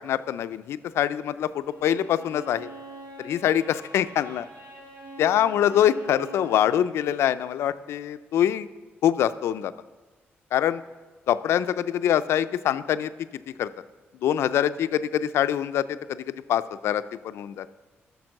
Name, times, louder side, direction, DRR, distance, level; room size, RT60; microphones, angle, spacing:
voice 1, 0.0-2.7 3.2-4.5 5.2-8.7 9.0-9.7 10.5-10.8 11.3-13.1 13.6-13.7 14.2-17.7, left 10 dB, 85° left, 13 dB, 0.4 m, -24 dB
Bowed string instrument, 1.6-7.0, right 2 dB, 75° right, 3.5 m, -44 dB
10.5 x 6.7 x 6.4 m, 1.3 s
cardioid pair, 145°, 4 cm